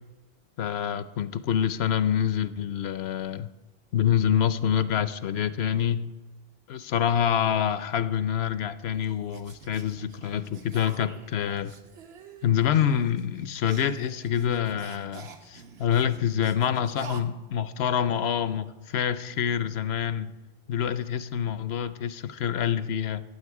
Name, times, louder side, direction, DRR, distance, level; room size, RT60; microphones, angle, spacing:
voice 1, 0.6-3.5 3.9-6.1 6.7-11.7 12.4-20.3 20.7-23.2, left 9 dB, 80° left, 14 dB, 0.9 m, -26 dB
sound 1, 8.6-17.2, right 5 dB, 75° right, 1.2 m, -48 dB
15.0 x 9.1 x 4.7 m, 1.1 s
omnidirectional pair, 1.1 m